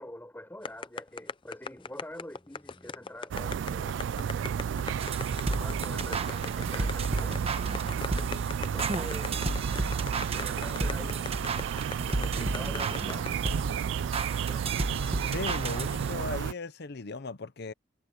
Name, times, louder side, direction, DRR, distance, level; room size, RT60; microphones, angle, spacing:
voice 1, 0.0-4.3 5.5-7.5 8.6-9.5 10.2-11.4 12.2-13.4 14.3-14.7, left 1 dB, 10° left, 4.4 m, -45 dB
sound 1, 0.6-13.5, left 4 dB, 25° left, 0.5 m, -38 dB
sound 2, 3.3-16.5, right 8 dB, 65° right, 0.3 m, -32 dB
sound 3, 5.0-16.3, right 2 dB, 30° right, 1.2 m, -34 dB
voice 2, 15.2-17.7, left 3 dB, 55° left, 0.8 m, -37 dB
head